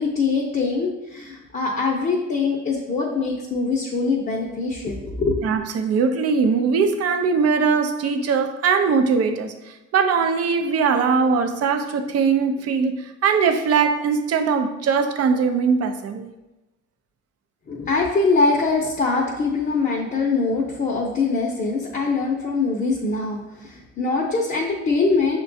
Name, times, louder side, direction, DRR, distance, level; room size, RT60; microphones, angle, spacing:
voice 1, 0.0-5.4 17.7-25.4, left 4 dB, 30° left, -1 dB, 0.6 m, -23 dB
voice 2, 5.4-9.5 9.9-16.3, right 5 dB, 55° right, 7 dB, 0.5 m, -20 dB
6.1 x 2.2 x 2.6 m, 0.98 s
cardioid pair, 90°, 30 cm